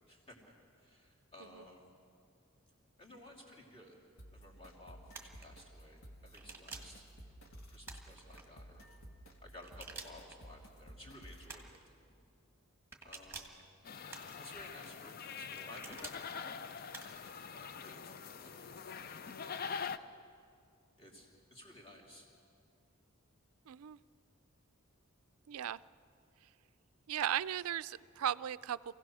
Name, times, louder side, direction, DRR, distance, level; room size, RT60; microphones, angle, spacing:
voice 1, 0.1-0.4 0.8-1.9 3.0-4.0 4.3-7.0 7.7-8.9 9.4-12.2 13.0-13.6 14.4-16.8 17.5-19.2 19.6-20.2 21.0-22.3, left 1 dB, 25° left, -2 dB, 2.8 m, -56 dB
sound 1, 4.2-11.6, right 1 dB, 70° left, 1.8 m, -55 dB
sound 2, 5.1-5.5 6.3-7.0 7.8-8.5 9.6-10.4 11.5-11.8 12.9-13.6 14.1-14.7 15.5-16.2 16.9-17.3, right 4 dB, 10° right, 1.5 m, -50 dB
sound 3, 13.8-20.0, left 6 dB, 45° left, 0.4 m, -44 dB
voice 2, 23.7-24.0 25.5-25.8 27.1-28.9, right 10 dB, 85° right, 17 dB, 0.4 m, -36 dB
26.0 x 16.5 x 6.2 m, 2.4 s
head